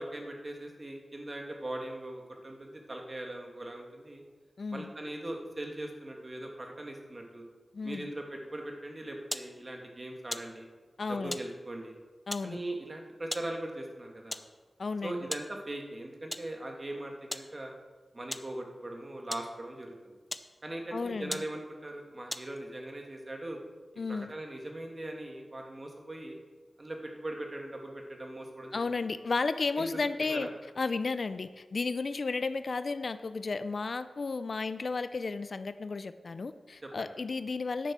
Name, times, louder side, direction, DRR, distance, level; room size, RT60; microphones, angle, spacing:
voice 1, 0.0-4.2 4.7-7.4 7.8-10.7 11.1-12.0 12.4-14.4 15.0-17.7 18.1-20.1 20.6-23.6 24.1-26.4 26.8-28.8 29.7-30.5 36.8-37.1, right 1 dB, 35° right, 2 dB, 1.8 m, -40 dB
voice 2, 4.6-4.9 7.7-8.1 11.0-11.4 12.3-12.6 14.8-15.3 20.9-21.4 24.0-24.3 28.7-30.5 30.8-37.9, left 4 dB, 60° left, 13 dB, 0.4 m, -33 dB
sound 1, 9.3-9.5 10.3-10.5 11.3-11.5 12.3-12.5 13.3-13.5 14.3-14.5 15.3-15.5 16.3-16.5 17.3-17.5 18.3-18.5 19.3-19.5 20.3-20.5 21.0-21.1 21.3-21.5 22.3-22.6, left 1 dB, 10° left, 0.6 m, -38 dB
10.0 x 6.9 x 6.0 m, 1.4 s
wide cardioid pair, 80°, 0 cm